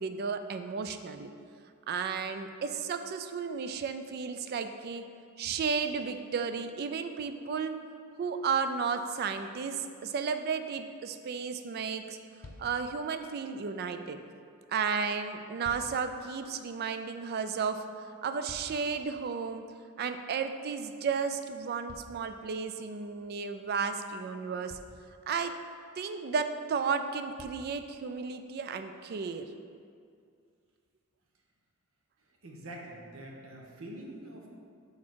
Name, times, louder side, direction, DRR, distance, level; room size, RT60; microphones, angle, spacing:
voice 1, 0.0-1.3 1.9-5.0 5.4-7.8 8.2-12.2 12.6-14.2 14.7-17.8 18.2-19.7 20.0-24.8 25.3-25.5 26.0-29.5, right 5 dB, 45° right, 8 dB, 0.3 m, -33 dB
sound 1, 12.4-12.9 15.3-16.1 18.0-19.1 21.9-22.9 24.0-24.1 24.7-25.1 26.6-26.7 27.4-27.8 28.6-28.7, left 1 dB, 65° left, 0.7 m, -51 dB
voice 2, 32.2-34.5, right 1 dB, 70° right, 0 dB, 0.9 m, -45 dB
6.2 x 3.6 x 4.5 m, 2.3 s
head